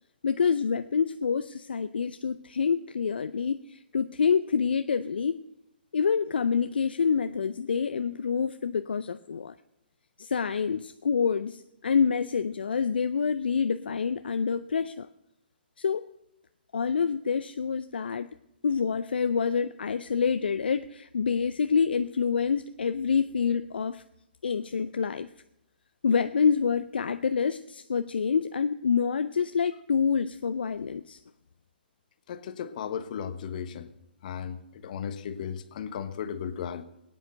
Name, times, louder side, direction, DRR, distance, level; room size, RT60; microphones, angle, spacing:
voice 1, 0.2-5.4 5.9-9.6 10.2-15.1 15.8-16.1 16.7-18.3 18.6-24.0 24.4-25.3 26.0-31.2, left 6 dB, 70° left, 11 dB, 0.5 m, -27 dB
voice 2, 32.3-33.9 34.2-36.8, left 8 dB, 50° left, 11 dB, 1.2 m, -35 dB
18.0 x 9.3 x 6.5 m, 0.84 s
figure-of-eight pair, 130°, 6 cm